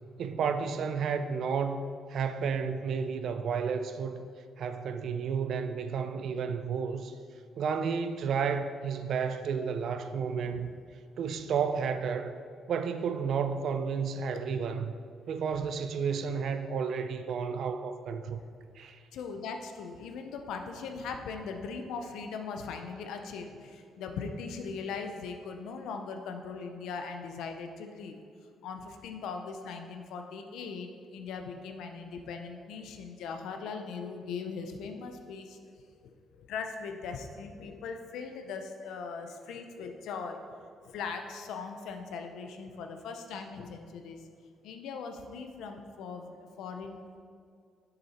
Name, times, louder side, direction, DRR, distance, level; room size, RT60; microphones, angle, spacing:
voice 1, 0.2-1.8 2.1-4.2 4.6-7.1 7.6-10.7 11.2-12.3 12.7-14.9 15.3-18.4 18.8-19.0, right 6 dB, 65° right, 9 dB, 0.5 m, -31 dB
voice 2, 10.3-10.6 14.3-14.4 19.1-28.2 28.6-35.6 36.0-40.6 40.8-44.2 44.6-47.0, left 5 dB, 85° left, 5 dB, 0.6 m, -40 dB
6.9 x 6.8 x 4.3 m, 2.3 s
cardioid pair, 90°, 0 cm